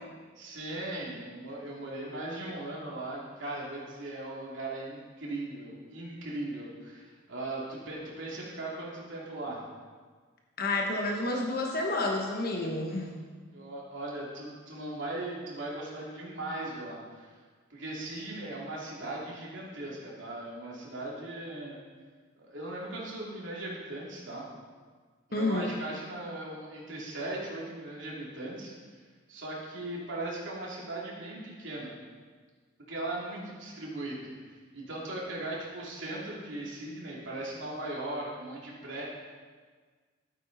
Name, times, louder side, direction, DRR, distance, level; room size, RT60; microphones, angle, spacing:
voice 1, 0.4-9.6 13.5-17.3 17.7-21.8 22.4-24.4 25.3-28.7 29.3-31.9 32.9-39.0, right 2 dB, 65° right, -4 dB, 2.7 m, -38 dB
voice 2, 10.6-13.1 25.3-25.7, left 2 dB, 45° left, 1 dB, 1.1 m, -30 dB
12.5 x 9.1 x 4.0 m, 1.5 s
head